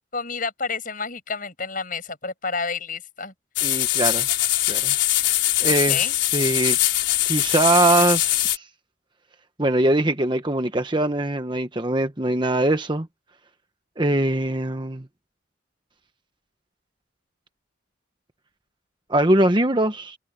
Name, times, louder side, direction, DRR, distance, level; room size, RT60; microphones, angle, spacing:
voice 1, 0.1-3.3 5.6-6.2, left 4 dB, 45° left, 7.8 m, -30 dB
sound 1, 3.6-8.6, left 14 dB, 65° left, 4.9 m, -22 dB
voice 2, 3.6-4.3 4.7-4.9 5.6-6.8 7.2-8.6 9.6-13.1 14.0-15.1 19.1-20.2, right 2 dB, 25° right, 1.1 m, -22 dB
head